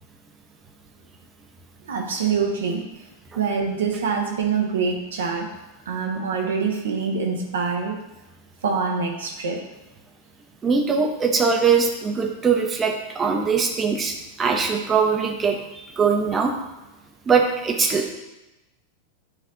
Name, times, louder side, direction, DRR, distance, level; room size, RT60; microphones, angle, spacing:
voice 1, 1.8-2.8 3.3-5.5 5.8-8.0 8.6-9.7, right 5 dB, 65° right, 1 dB, 1.2 m, -25 dB
voice 2, 10.6-16.5 17.3-18.1, right 5 dB, 20° right, 3 dB, 1.0 m, -21 dB
9.5 x 3.4 x 3.9 m, 1.0 s
figure-of-eight pair, 90°, 0 cm